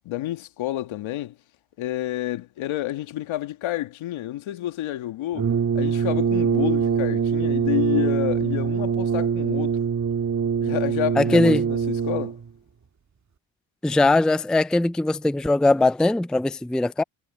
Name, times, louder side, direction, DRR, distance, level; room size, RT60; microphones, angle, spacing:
voice 1, 0.0-1.4 1.8-9.8 10.6-12.4, left 14 dB, 70° left, 1.9 m, -29 dB
Brass instrument, 5.3-12.5, right 7 dB, 35° right, 2.4 m, -23 dB
voice 2, 11.2-11.6 13.8-17.0, left 2 dB, ahead, 0.5 m, -20 dB
supercardioid pair, 85°, 49 cm